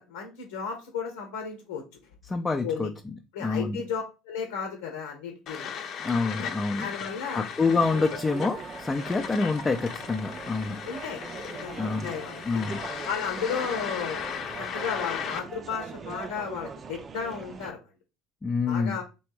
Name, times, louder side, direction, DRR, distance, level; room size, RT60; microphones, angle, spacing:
voice 1, 0.0-2.0 2.6-2.9 3.3-5.7 6.4-7.4 10.9-11.2 11.6-12.6 13.0-14.2 14.6-17.8 18.7-19.0, left 6 dB, 85° left, 3 dB, 1.0 m, -34 dB
voice 2, 2.3-2.9 3.4-3.8 6.0-6.9 7.3-10.8 11.8-12.1 12.4-12.8 18.4-19.0, left 4 dB, 20° left, 3 dB, 0.6 m, -27 dB
sound 1, 5.5-15.4, left 7 dB, 55° left, 0.8 m, -37 dB
sound 2, 7.6-17.7, right 5 dB, 35° right, 0.6 m, -41 dB
3.3 x 3.1 x 4.7 m, 0.29 s
hypercardioid pair, 80°, 0 cm